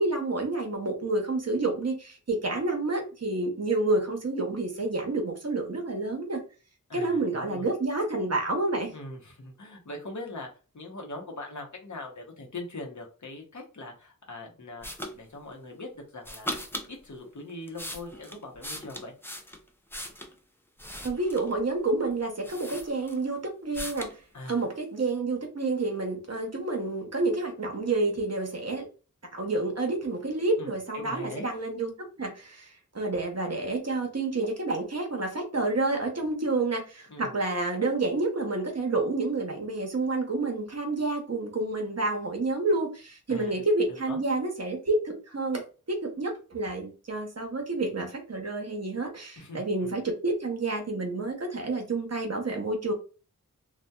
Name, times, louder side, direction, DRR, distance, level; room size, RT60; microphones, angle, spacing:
voice 1, 0.0-6.4 6.9-8.9 21.0-24.1 24.5-28.9 29.3-31.9 32.2-45.6 45.9-52.9, right 2 dB, 50° right, 0.7 m, -29 dB
voice 2, 6.9-7.7 8.9-16.6 16.9-19.1 24.3-24.6 30.6-30.7 30.9-31.5 37.1-37.3 43.3-43.6 43.9-44.2 49.4-50.0, left 2 dB, 55° left, 0.8 m, -41 dB
sound 1, 14.8-15.1 16.2-16.9 17.5-20.3 20.8-21.6 22.1-22.2 22.4-23.3 23.7-24.2, left 1 dB, 5° left, 0.4 m, -38 dB
2.7 x 2.1 x 2.2 m
wide cardioid pair, 55°, 34 cm